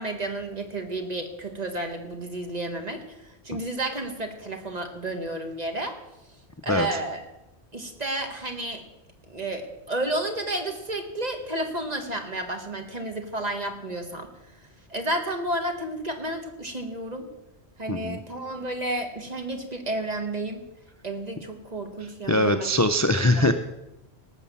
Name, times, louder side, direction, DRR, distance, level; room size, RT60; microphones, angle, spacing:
voice 1, 0.0-3.0 3.4-6.0 6.6-7.2 7.7-8.8 9.3-14.3 14.9-17.3 17.8-20.6 21.0-22.8 23.3-23.5, right 1 dB, 40° right, 4 dB, 1.8 m, -31 dB
voice 2, 6.7-7.0 17.9-18.2 22.3-23.5, left 1 dB, 25° left, 8 dB, 0.4 m, -22 dB
18.5 x 6.6 x 7.0 m, 0.94 s
omnidirectional pair, 1.1 m